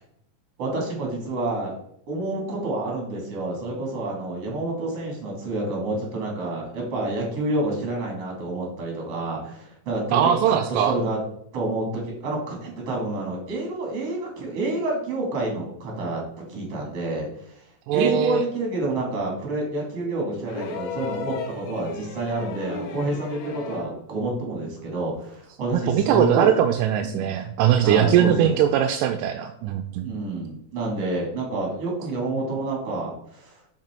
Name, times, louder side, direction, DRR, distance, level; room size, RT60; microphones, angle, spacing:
voice 1, 0.6-1.7 2.1-11.2 11.5-16.2 16.5-17.6 17.9-26.5 27.0-27.3 27.8-28.6 30.0-33.6, right 2 dB, 50° right, -1 dB, 3.1 m, -28 dB
voice 2, 10.1-11.0 17.9-18.4 25.7-30.1, right 10 dB, 85° right, 6 dB, 2.1 m, -21 dB
sound 1, 20.5-24.0 25.3-25.4, left 5 dB, 70° left, 1.9 m, -35 dB
6.0 x 5.7 x 4.4 m, 0.73 s
omnidirectional pair, 3.7 m